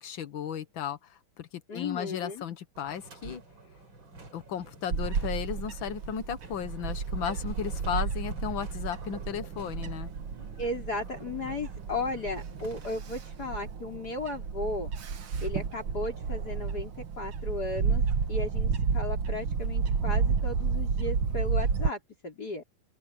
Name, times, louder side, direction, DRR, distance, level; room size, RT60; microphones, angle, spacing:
voice 1, 0.0-3.4 4.3-10.1, left 8 dB, 70° left, 1.9 m, -35 dB
voice 2, 1.7-2.4 10.6-14.9 15.4-18.0 18.3-22.6, left 2 dB, 50° left, 5.0 m, -35 dB
sound 1, 2.7-13.3, right 3 dB, 70° right, 5.4 m, -49 dB
Bird / Wind, 4.9-21.9, right 5 dB, 90° right, 2.4 m, -31 dB
open air
omnidirectional pair, 2.2 m